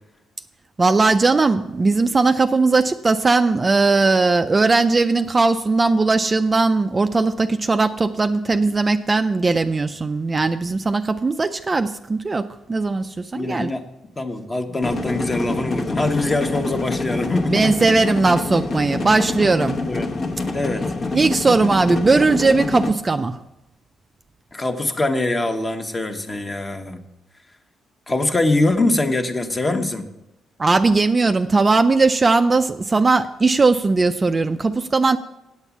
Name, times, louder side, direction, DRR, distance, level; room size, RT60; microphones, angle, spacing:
voice 1, 0.8-13.7 17.5-19.8 21.1-23.4 30.6-35.2, right 3 dB, 25° right, 8 dB, 0.4 m, -18 dB
voice 2, 13.3-13.8 14.2-17.8 19.8-20.1 20.5-20.9 24.5-27.0 28.1-30.0, left 2 dB, 25° left, 6 dB, 1.1 m, -23 dB
sound 1, 14.8-22.9, left 3 dB, 45° left, 1.0 m, -26 dB
8.3 x 8.1 x 7.0 m, 0.93 s
cardioid pair, 90°, 0 cm